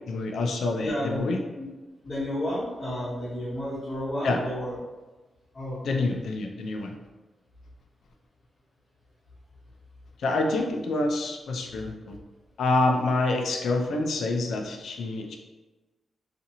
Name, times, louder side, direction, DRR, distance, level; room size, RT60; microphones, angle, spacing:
voice 1, 0.1-1.4 4.2-4.4 5.8-6.9 10.2-12.2 12.6-15.4, left 2 dB, 70° left, 3 dB, 0.4 m, -27 dB
voice 2, 0.8-1.2 1.6-1.7 2.0-4.8 5.5-6.0, left 1 dB, 25° left, -10 dB, 0.8 m, -31 dB
2.8 x 2.4 x 2.6 m, 1.2 s
wide cardioid pair, 180°, 0 cm